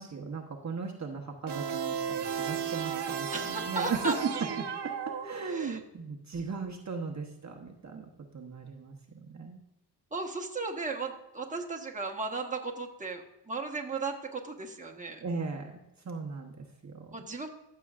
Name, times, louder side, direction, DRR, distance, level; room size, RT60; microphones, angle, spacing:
voice 1, 0.0-4.9 5.2-9.6 15.2-15.8 16.0-17.2, right 5 dB, 40° right, 1 dB, 1.1 m, -37 dB
sound 1, 1.5-5.8, right 7 dB, 70° right, 1.0 m, -35 dB
voice 2, 3.3-4.4 5.5-5.8 10.1-15.2 17.1-17.5, right 3 dB, 20° right, 2 dB, 1.3 m, -36 dB
14.0 x 6.9 x 2.5 m, 0.93 s
wide cardioid pair, 95°, 41 cm